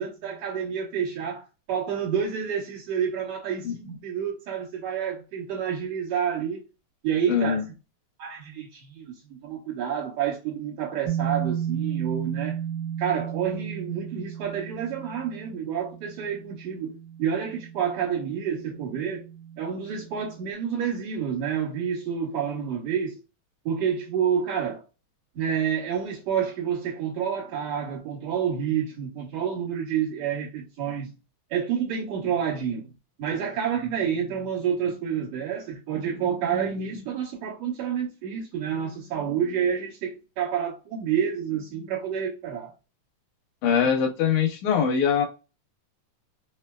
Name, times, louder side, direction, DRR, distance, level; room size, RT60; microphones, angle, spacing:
voice 1, 0.0-6.6 7.0-7.6 8.2-12.6 13.0-19.3 19.6-23.2 23.7-24.8 25.4-31.1 31.5-32.9 33.2-42.7, right 8 dB, 65° right, 2.2 m, -29 dB
voice 2, 7.3-7.6 43.6-45.3, left 7 dB, 85° left, 2.5 m, -22 dB
sound 1, 11.0-20.5, right 9 dB, 80° right, 2.1 m, -34 dB
5.5 x 2.1 x 2.2 m
omnidirectional pair, 3.4 m